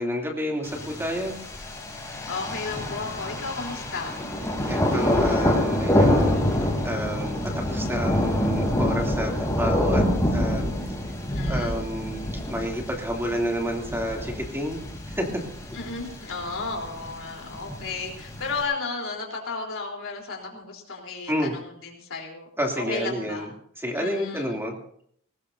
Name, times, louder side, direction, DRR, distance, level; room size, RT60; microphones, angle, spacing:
voice 1, 0.0-1.4 4.7-10.7 11.5-14.8 15.1-15.4 20.5-20.6 21.3-21.5 22.6-23.5 23.8-24.8, equal, 10° right, 0 dB, 2.9 m, -30 dB
Thunder, 0.6-18.6, left 1 dB, 15° left, 3.4 m, -26 dB
voice 2, 2.3-4.2 11.3-11.8 15.7-22.5 22.8-23.5 23.9-24.5, left 4 dB, 60° left, 0 dB, 3.8 m, -33 dB
22.0 x 19.5 x 2.8 m, 0.65 s
head